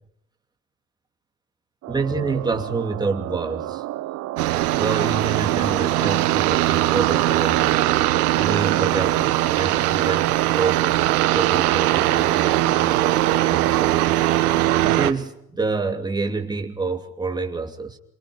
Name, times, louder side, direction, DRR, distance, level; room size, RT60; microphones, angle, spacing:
sound 1, 1.8-14.2, right 16 dB, 35° right, 0.8 m, -31 dB
voice 1, 1.9-3.8 4.8-7.9 8.4-10.8 11.3-18.0, right 4 dB, 10° right, 3 dB, 2.8 m, -28 dB
sound 2, 4.4-15.1, right 15 dB, 70° right, 1.5 m, -20 dB
27.5 x 24.0 x 5.1 m, 0.76 s
hypercardioid pair, 100°, 47 cm